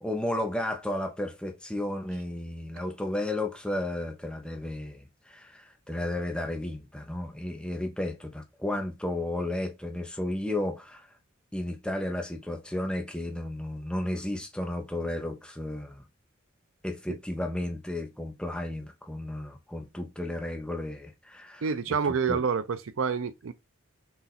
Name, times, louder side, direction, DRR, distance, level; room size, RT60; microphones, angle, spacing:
voice 1, 0.0-11.1 11.5-16.0 16.8-21.6 22.3-22.4, left 1 dB, 5° left, 0.6 m, -33 dB
voice 2, 21.6-23.5, right 6 dB, 75° right, 0.5 m, -28 dB
4.0 x 2.4 x 4.0 m
head